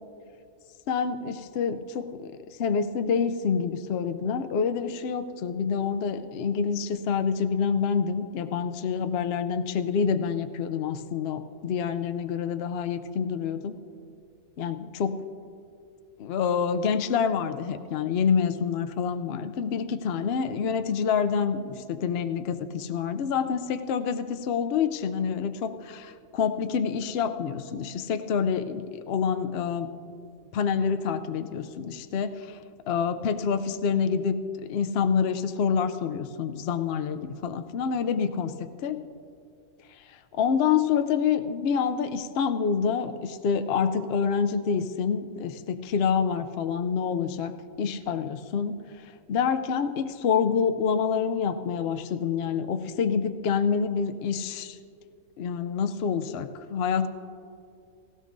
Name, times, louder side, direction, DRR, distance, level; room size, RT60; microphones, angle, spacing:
voice 1, 0.9-13.7 14.6-15.2 16.2-29.9 30.5-32.6 32.9-39.0 40.0-47.5 47.8-54.8 55.4-57.1, left 6 dB, 70° left, 8 dB, 0.6 m, -27 dB
17.0 x 16.5 x 2.6 m, 2.4 s
omnidirectional pair, 1.7 m